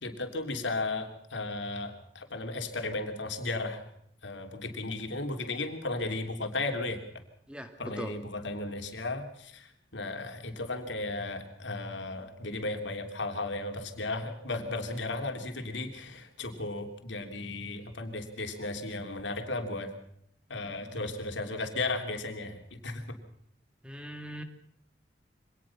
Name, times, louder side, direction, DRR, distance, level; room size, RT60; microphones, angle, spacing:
voice 1, 0.0-3.9 4.2-7.0 7.8-19.9 20.5-23.0, left 2 dB, 85° left, 5 dB, 3.2 m, -35 dB
voice 2, 7.5-8.1 23.8-24.4, equal, 5° right, 7 dB, 2.0 m, -40 dB
24.0 x 18.5 x 6.0 m, 0.73 s
head